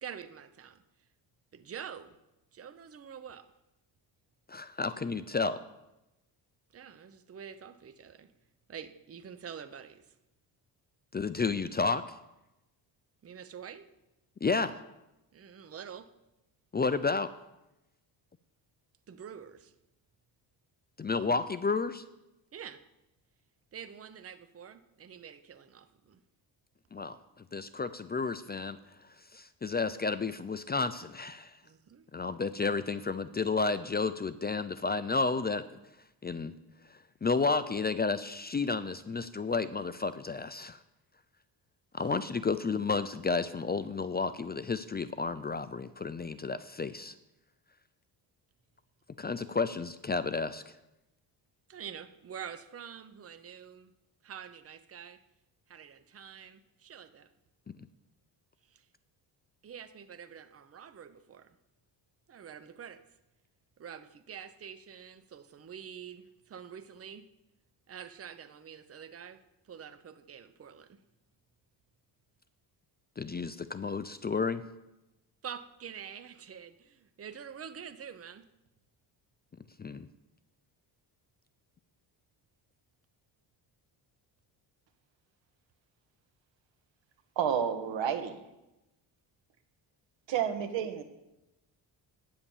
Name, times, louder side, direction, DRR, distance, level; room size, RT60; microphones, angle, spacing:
voice 1, 0.0-0.8 1.5-2.2 2.5-3.5 6.7-8.3 8.7-10.1 13.2-13.9 15.3-16.1 19.1-19.7 22.5-22.8 23.7-26.2 31.6-32.1 51.7-53.9 54.2-55.2 55.7-57.3 58.7-58.8 59.6-61.5 62.3-63.0 63.8-67.3 67.9-69.4 69.7-71.0 75.4-78.5, right 8 dB, 30° right, 11 dB, 0.9 m, -46 dB
voice 2, 4.5-5.6 11.1-12.0 14.4-14.8 16.7-17.3 21.0-22.0 26.9-27.2 27.5-28.8 29.3-31.6 32.1-35.6 36.2-36.5 36.9-40.8 41.9-47.1 49.2-50.7 73.2-74.6 79.8-80.1, left 4 dB, 20° left, 13 dB, 0.5 m, -31 dB
voice 3, 87.4-88.4 90.3-91.0, right 8 dB, 70° right, 8 dB, 1.7 m, -30 dB
11.5 x 9.7 x 7.3 m, 0.95 s
cardioid pair, 100°, 46 cm